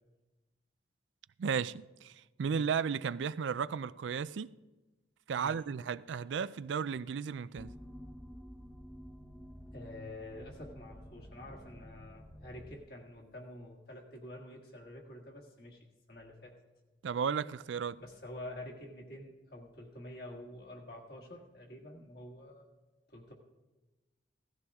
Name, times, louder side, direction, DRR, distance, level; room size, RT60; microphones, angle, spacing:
voice 1, 1.4-2.1 2.4-4.6 5.3-7.7 17.0-18.0, right 6 dB, 80° right, 0.4 m, -34 dB
sound 1, 7.5-12.8, equal, 5° left, 0.7 m, -50 dB
voice 2, 9.7-16.6 18.0-22.7 23.1-23.3, left 1 dB, 55° left, 1.7 m, -48 dB
16.5 x 14.0 x 3.6 m
head